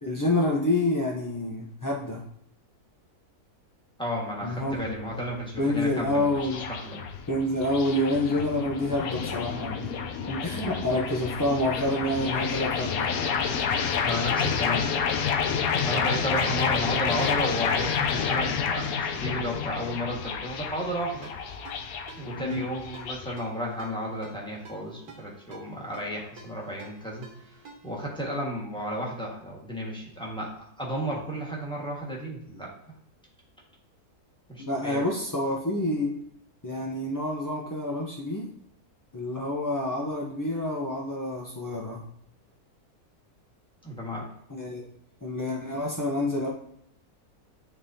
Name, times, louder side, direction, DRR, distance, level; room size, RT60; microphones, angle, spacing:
voice 1, 0.0-2.2 4.4-4.8 5.6-6.6 7.3-9.9 10.3-13.1 22.4-22.7 34.6-36.1 36.6-38.5 39.1-42.0 44.5-44.8 45.2-46.5, left 1 dB, 30° left, -3 dB, 0.3 m, -28 dB
voice 2, 4.0-6.3 6.7-7.0 14.0-14.9 15.5-21.3 22.2-27.3 27.8-32.7 34.5-35.1 43.8-44.3, equal, 5° left, -3 dB, 1.4 m, -33 dB
sound 1, 4.4-23.4, left 6 dB, 70° left, 1.0 m, -29 dB
Ringtone, 21.2-28.1, right 4 dB, 70° right, 1.7 m, -51 dB
10.0 x 3.7 x 2.7 m, 0.73 s
omnidirectional pair, 1.6 m